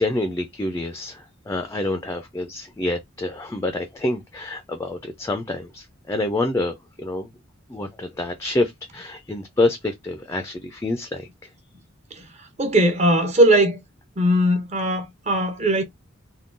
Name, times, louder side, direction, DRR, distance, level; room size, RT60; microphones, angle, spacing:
voice 1, 0.0-7.3 7.7-11.3, left 2 dB, 15° left, 0.3 m, -27 dB
voice 2, 12.6-13.8 14.2-15.8, right 1 dB, 35° right, 0.6 m, -19 dB
3.6 x 2.2 x 2.4 m
head